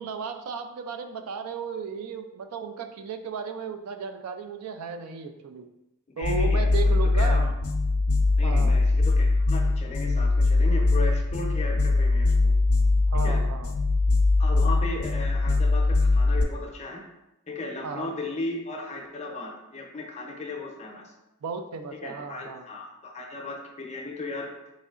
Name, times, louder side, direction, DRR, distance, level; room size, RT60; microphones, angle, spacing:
voice 1, 0.0-5.7 6.2-7.5 8.4-8.8 13.1-13.7 17.8-18.1 21.4-22.6, right 5 dB, 85° right, 8 dB, 0.3 m, -34 dB
sound 1, 6.2-16.4, left 3 dB, 80° left, 0.4 m, -22 dB
voice 2, 6.2-7.5 8.4-12.5 13.2-13.4 14.4-17.0 17.5-21.1 22.0-24.5, left 2 dB, 30° left, 1 dB, 0.5 m, -36 dB
3.6 x 3.1 x 2.4 m, 0.93 s
head